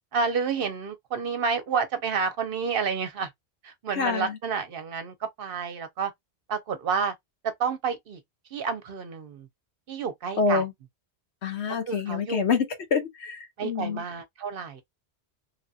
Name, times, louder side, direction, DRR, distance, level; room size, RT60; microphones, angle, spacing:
voice 1, 0.1-3.3 3.6-6.1 6.5-7.1 7.4-8.2 8.5-9.5 9.9-10.6 11.9-12.4 13.6-14.8, right 5 dB, 60° right, 0.8 m, -29 dB
voice 2, 3.9-4.4 10.4-10.7 11.4-14.0, left 5 dB, 80° left, 1.1 m, -27 dB
3.1 x 2.3 x 2.7 m
omnidirectional pair, 1.1 m